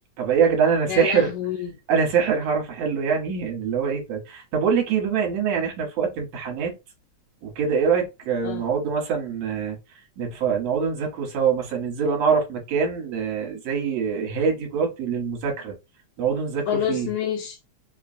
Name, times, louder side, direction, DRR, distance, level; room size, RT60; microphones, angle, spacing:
voice 1, 0.2-1.3 1.9-6.7 7.4-9.8 10.2-15.7 16.2-17.1, right 6 dB, 65° right, 2.1 m, -24 dB
voice 2, 0.9-1.7 8.4-8.6 16.7-17.8, left 9 dB, 80° left, 2.0 m, -28 dB
5.2 x 2.3 x 2.6 m
omnidirectional pair, 3.4 m